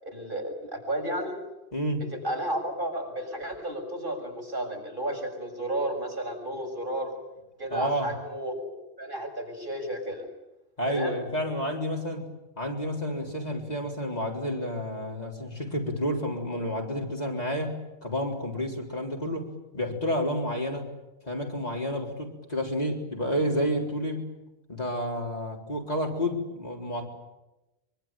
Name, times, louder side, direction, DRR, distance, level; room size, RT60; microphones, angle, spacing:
voice 1, 0.0-1.4 2.1-7.1 7.6-8.6 9.0-10.3 10.8-11.2, right 1 dB, 50° right, 1 dB, 6.9 m, -32 dB
voice 2, 1.7-2.0 7.7-8.1 10.8-12.3 12.6-20.9 21.2-24.3 24.7-27.1, equal, 40° left, 0 dB, 4.2 m, -30 dB
24.5 x 24.5 x 9.1 m, 0.99 s
omnidirectional pair, 1.1 m